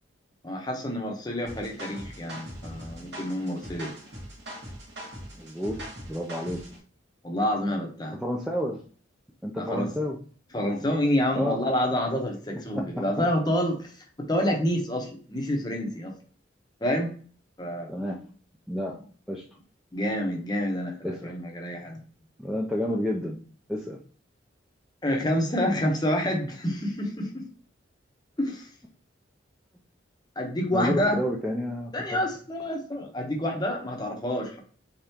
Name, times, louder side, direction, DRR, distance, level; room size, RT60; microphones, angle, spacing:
voice 1, 0.4-3.9 7.2-8.2 9.6-9.9 10.5-13.9 14.2-16.1 16.8-17.1 17.6-17.9 19.9-22.0 25.0-27.4 28.4-28.7 30.4-31.2 31.9-34.6, left 1 dB, 20° left, 1 dB, 0.7 m, -28 dB
sound 1, 1.5-6.8, equal, 60° right, 1.5 m, -41 dB
voice 2, 5.3-6.7 8.1-8.8 9.4-10.2 11.3-11.6 12.7-13.0 17.9-18.3 18.7-19.0 19.3-19.5 21.0-21.3 22.4-23.4 23.7-24.0 30.7-32.2, equal, ahead, -1 dB, 0.3 m, -30 dB
3.6 x 3.5 x 2.8 m, 0.43 s
head